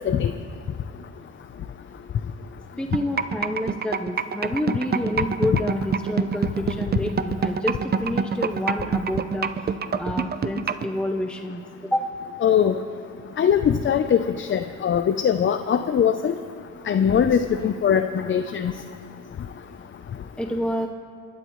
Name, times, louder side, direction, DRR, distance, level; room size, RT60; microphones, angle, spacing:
voice 1, 2.8-9.7 10.0-12.0 20.4-20.9, left 1 dB, 5° left, 3 dB, 0.7 m, -28 dB
sound 1, 2.9-10.9, right 6 dB, 35° right, 0.6 m, -24 dB
voice 2, 12.4-12.7 13.4-16.3 16.9-18.7, left 8 dB, 40° left, 8 dB, 0.6 m, -21 dB
30.0 x 11.5 x 3.1 m, 2.3 s
cardioid pair, 90°, 30 cm